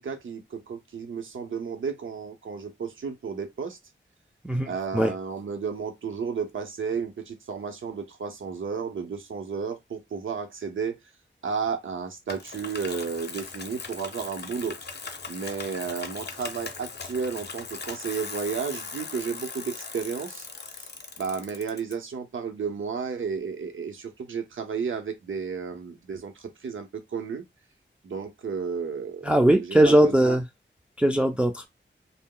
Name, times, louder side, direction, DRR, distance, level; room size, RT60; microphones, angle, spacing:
voice 1, 0.0-3.8 4.7-11.0 11.4-14.8 15.3-20.5 20.8-20.9 21.2-27.4 28.0-29.3 29.6-30.4, right 6 dB, 80° right, 0.7 m, -32 dB
voice 2, 4.4-5.1 29.2-30.4 31.0-31.7, right 1 dB, 5° right, 0.3 m, -20 dB
Bicycle, 12.3-21.9, left 4 dB, 60° left, 0.6 m, -39 dB
2.1 x 2.0 x 3.7 m
wide cardioid pair, 75°, 20 cm